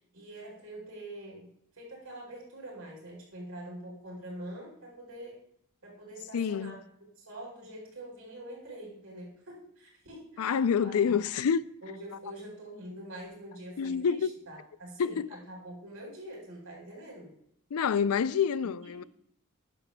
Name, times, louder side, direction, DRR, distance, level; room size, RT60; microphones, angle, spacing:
voice 1, 0.1-1.5 1.7-5.4 5.8-6.8 7.2-11.2 11.8-14.2 14.5-15.2 15.5-17.3 18.6-19.1, right 1 dB, 75° right, 4.5 m, -45 dB
voice 2, 6.3-6.8 10.4-11.6 13.8-14.3 15.0-15.3 17.7-19.0, left 7 dB, 80° left, 0.4 m, -27 dB
13.0 x 10.0 x 2.3 m
head